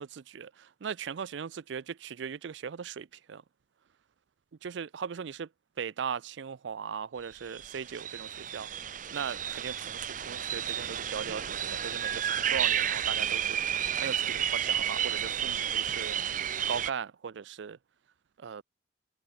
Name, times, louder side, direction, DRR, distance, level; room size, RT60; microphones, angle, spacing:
voice 1, 0.0-3.4 4.6-5.5 5.8-16.2 16.7-17.8 18.4-18.6, right 7 dB, 70° right, 0.4 m, -38 dB
sound 1, 7.3-7.4 7.5-16.9, right 9 dB, 45° right, 0.8 m, -31 dB
head